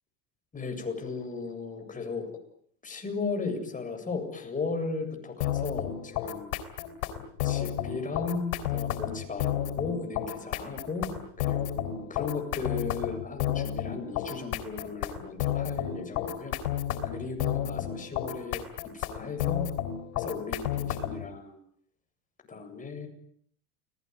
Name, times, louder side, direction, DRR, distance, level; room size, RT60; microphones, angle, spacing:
voice 1, 0.5-2.3 2.8-6.5 7.4-11.1 11.4-16.6 17.1-18.6 18.9-19.7 20.2-21.6 22.5-23.1, left 4 dB, 20° left, 4 dB, 7.9 m, -36 dB
sound 1, 5.4-21.3, left 11 dB, 90° left, 4.5 m, -31 dB
29.5 x 20.0 x 9.6 m, 0.64 s
supercardioid pair, 130°, 43 cm